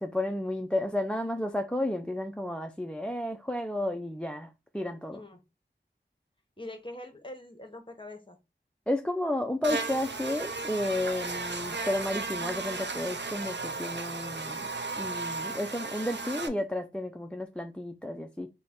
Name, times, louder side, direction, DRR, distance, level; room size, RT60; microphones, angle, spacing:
voice 1, 0.0-5.2 8.9-14.7 14.9-18.5, left 1 dB, 5° left, 0.3 m, -32 dB
voice 2, 5.1-5.4 6.6-8.4, left 1 dB, 25° left, 0.9 m, -43 dB
Buzz, 9.6-16.5, right 3 dB, 65° right, 0.5 m, -35 dB
3.7 x 2.2 x 3.5 m
wide cardioid pair, 40°, 20 cm